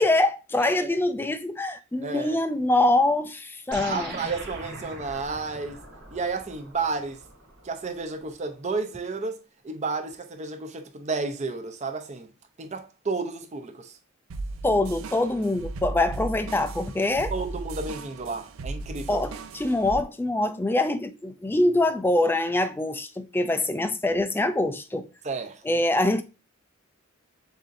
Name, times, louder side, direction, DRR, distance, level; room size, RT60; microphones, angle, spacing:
voice 1, 0.0-4.2 14.6-17.3 19.1-25.1 25.6-26.2, left 2 dB, 10° left, 0.3 m, -24 dB
voice 2, 2.0-2.4 3.8-7.2 7.6-9.4 9.6-12.3 12.6-14.0 17.3-19.2 25.2-25.6, right 4 dB, 35° right, 0.6 m, -32 dB
sound 1, 3.7-8.4, right 2 dB, 55° right, 1.3 m, -42 dB
sound 2, 14.3-20.0, right 2 dB, 80° right, 0.5 m, -36 dB
6.8 x 2.7 x 2.5 m
head